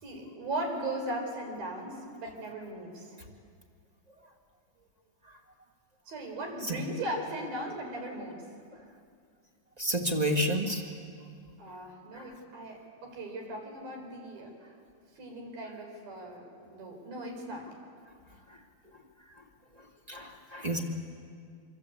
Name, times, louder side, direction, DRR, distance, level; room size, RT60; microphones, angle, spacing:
voice 1, 0.0-3.2 6.1-8.4 11.6-14.5 15.2-17.7, right 1 dB, 65° right, 2 dB, 6.6 m, -38 dB
voice 2, 9.8-10.8 12.1-12.3 20.1-20.8, equal, 15° right, 2 dB, 1.3 m, -30 dB
26.5 x 26.5 x 8.4 m, 2.2 s
omnidirectional pair, 4.5 m